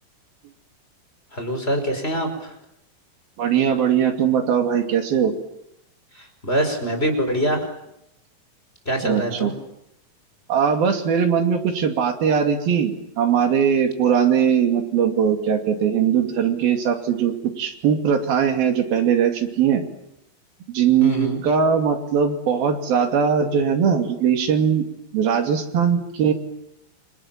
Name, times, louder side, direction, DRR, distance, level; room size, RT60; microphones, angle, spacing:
voice 1, 1.3-2.3 6.4-7.7 8.8-9.5 21.0-21.4, right 1 dB, 15° left, 4 dB, 5.1 m, -23 dB
voice 2, 3.4-5.3 9.0-9.5 10.5-19.8 20.7-24.8 25.1-26.3, right 7 dB, 85° right, 5 dB, 4.5 m, -20 dB
28.5 x 26.0 x 7.4 m, 0.81 s
omnidirectional pair, 4.1 m